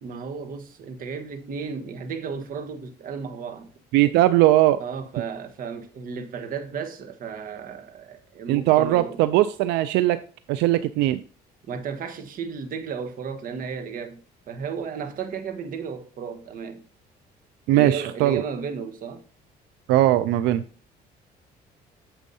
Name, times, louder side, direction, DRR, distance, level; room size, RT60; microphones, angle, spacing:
voice 1, 0.0-3.7 4.8-9.2 11.7-14.2 14.5-16.8 17.7-19.2, right 6 dB, 55° right, 1.3 m, -34 dB
voice 2, 3.9-4.8 8.5-10.2 10.5-11.2 17.7-18.4 19.9-20.6, right 14 dB, 90° right, 0.4 m, -19 dB
8.8 x 7.3 x 2.7 m
cardioid pair, 110°, 17 cm